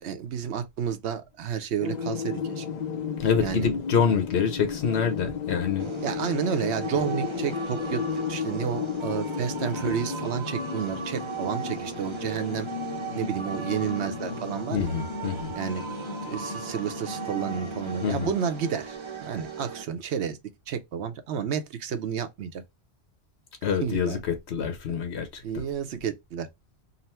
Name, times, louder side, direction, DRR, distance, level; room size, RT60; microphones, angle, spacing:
voice 1, 0.0-2.7 3.4-3.7 6.0-12.7 13.1-14.9 15.5-15.8 16.3-19.0 19.2-20.4 20.7-22.6 23.8-24.2 25.4-26.5, right 7 dB, 85° right, 1.0 m, -31 dB
sound 1, 1.8-18.4, left 6 dB, 55° left, 0.5 m, -34 dB
voice 2, 3.2-5.9 14.7-15.5 18.0-18.3 23.6-25.4, left 6 dB, 80° left, 1.1 m, -26 dB
sound 2, 5.8-19.9, right 6 dB, 35° right, 0.6 m, -38 dB
3.9 x 2.0 x 4.2 m
omnidirectional pair, 1.1 m